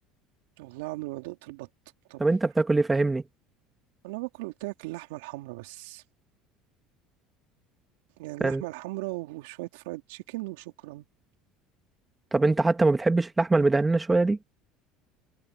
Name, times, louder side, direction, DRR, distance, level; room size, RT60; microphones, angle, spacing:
voice 1, 0.6-1.7 2.1-2.2 4.0-6.0 8.2-11.0, right 21 dB, 80° right, 3.2 m, -37 dB
voice 2, 2.2-3.2 8.4-8.6 12.3-14.4, right 3 dB, 15° right, 1.9 m, -23 dB
hypercardioid pair, 85°, 0 cm